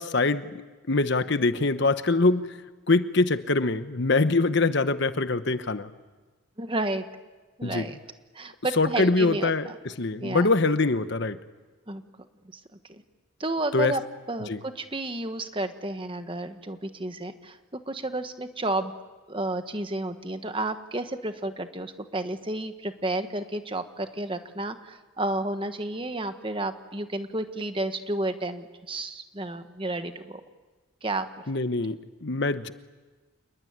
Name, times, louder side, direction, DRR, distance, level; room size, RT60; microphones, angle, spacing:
voice 1, 0.0-2.6 2.9-5.9 7.6-7.9 8.8-11.4 13.7-13.9 14.5-14.6 31.5-32.7, left 3 dB, 55° left, 11 dB, 1.0 m, -24 dB
voice 2, 6.6-7.0 7.6-8.0 8.3-9.7 10.2-10.5 11.9-12.0 12.5-12.6 12.9-13.0 13.4-14.0 14.3-17.6 17.9-18.9 19.3-30.4 31.0-31.3, right 2 dB, 25° right, 8 dB, 1.3 m, -31 dB
28.0 x 21.0 x 9.6 m, 1.3 s
head